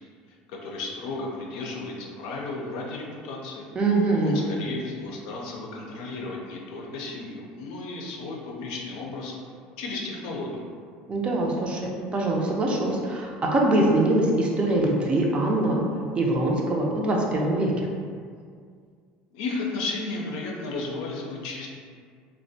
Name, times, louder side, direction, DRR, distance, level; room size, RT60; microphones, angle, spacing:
voice 1, 0.6-3.7 4.2-9.3 9.8-10.7 19.3-21.7, left 3 dB, 80° left, -2 dB, 0.4 m, -34 dB
voice 2, 3.7-4.5 11.1-15.8 16.2-17.9, right 2 dB, 30° right, -1 dB, 0.5 m, -23 dB
2.3 x 2.1 x 2.6 m, 2.1 s
supercardioid pair, 95°, 4 cm